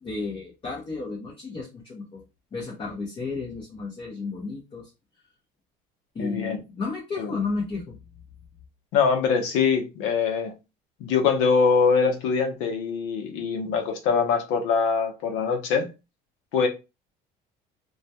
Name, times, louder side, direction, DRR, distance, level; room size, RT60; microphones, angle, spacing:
voice 1, 0.0-2.2 2.5-4.9 6.1-8.0, left 4 dB, 30° left, 0.7 m, -32 dB
voice 2, 6.2-6.6 7.2-7.3 8.9-10.5 11.0-15.9 16.5-16.7, left 5 dB, 80° left, 0.7 m, -23 dB
2.3 x 2.2 x 2.7 m
cardioid pair, 115°, 20 cm